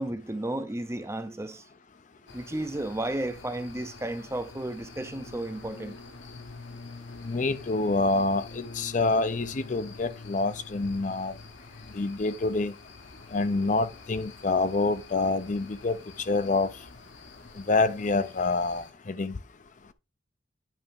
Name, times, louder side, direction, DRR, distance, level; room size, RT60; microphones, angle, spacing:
voice 1, 0.0-1.6 2.3-6.0, right 1 dB, 15° right, 0.5 m, -33 dB
sound 1, 2.3-18.9, left 3 dB, 75° left, 1.3 m, -46 dB
voice 2, 7.3-11.3 12.0-12.7 13.3-16.0 16.3-16.7 17.7-18.8 19.2-19.3, left 3 dB, 40° left, 0.5 m, -26 dB
9.1 x 5.6 x 3.6 m
head